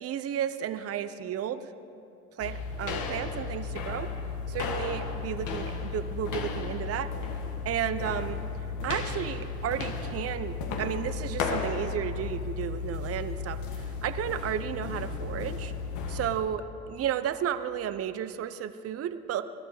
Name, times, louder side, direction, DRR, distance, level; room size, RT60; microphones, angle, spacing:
voice 1, 0.0-1.7 2.4-4.1 4.5-7.1 7.6-8.4 8.8-15.7 16.1-19.4, right 9 dB, 50° right, 11 dB, 0.7 m, -33 dB
sound 1, 2.4-16.4, left 5 dB, 75° left, 1.5 m, -34 dB
20.5 x 11.5 x 4.8 m, 2.6 s
cardioid pair, 85°, 30 cm